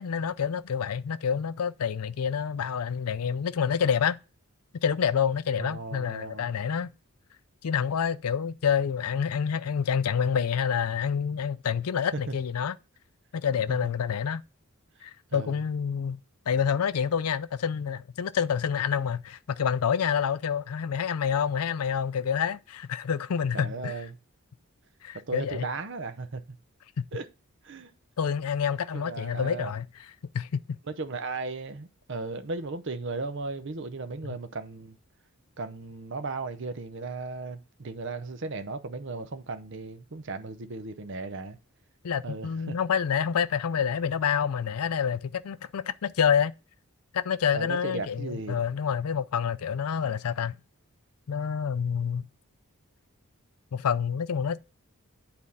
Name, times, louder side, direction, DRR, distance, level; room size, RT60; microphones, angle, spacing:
voice 1, 0.0-4.2 4.8-6.9 7.6-12.8 13.3-14.4 15.0-16.2 16.5-23.9 25.0-25.7 28.2-29.9 30.3-30.8 34.2-34.4 42.0-46.5 47.1-50.6 51.3-52.3 53.7-54.6, left 7 dB, 85° left, 0.5 m, -28 dB
voice 2, 5.6-6.5 15.3-15.6 23.5-24.2 25.3-26.4 27.1-27.2 27.6-27.9 28.9-29.7 30.9-35.0 35.6-41.6 42.2-42.8 47.5-48.6, right 3 dB, 55° right, 0.7 m, -36 dB
8.5 x 4.3 x 5.5 m
head